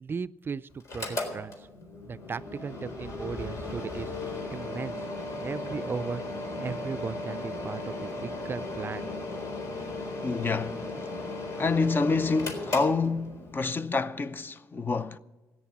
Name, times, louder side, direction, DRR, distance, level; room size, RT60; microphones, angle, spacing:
voice 1, 0.0-1.7 2.0-4.1 4.5-5.1 5.4-6.2 6.6-9.1, right 5 dB, 35° right, 0.4 m, -36 dB
Mechanical fan, 0.8-13.6, left 2 dB, 60° left, 4.0 m, -36 dB
voice 2, 10.2-10.8 11.6-15.2, left 4 dB, 35° left, 0.7 m, -27 dB
14.0 x 9.7 x 8.5 m
cardioid pair, 75°, 6 cm